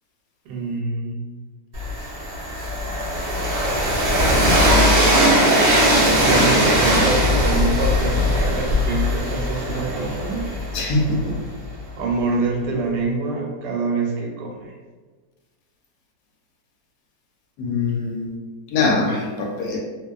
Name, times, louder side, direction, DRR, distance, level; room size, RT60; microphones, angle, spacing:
voice 1, 0.4-1.3 6.2-10.5 12.0-14.7, right 3 dB, 85° right, -1 dB, 1.2 m, -25 dB
Train, 1.7-11.6, equal, 65° right, 0.5 m, -19 dB
voice 2, 10.7-11.3 17.6-18.3 18.7-19.8, left 3 dB, 75° left, -1 dB, 1.1 m, -22 dB
2.6 x 2.4 x 2.3 m, 1.3 s
omnidirectional pair, 1.8 m